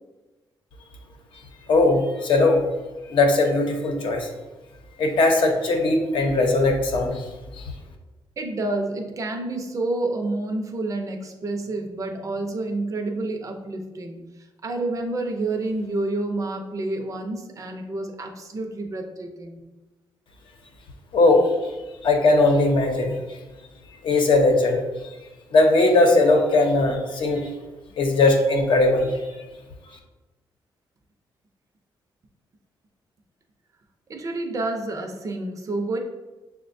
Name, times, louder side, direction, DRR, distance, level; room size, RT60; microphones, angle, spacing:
voice 1, 1.7-2.6 3.1-4.3 5.0-7.2 7.6-7.7 21.1-21.5 22.0-23.1 24.0-24.8 25.5-27.5 28.0-29.2, left 2 dB, 70° left, 1 dB, 0.8 m, -19 dB
voice 2, 8.4-19.6 34.1-36.0, right 2 dB, 40° right, 3 dB, 0.6 m, -29 dB
6.4 x 2.2 x 2.6 m, 1.1 s
cardioid pair, 105°, 9 cm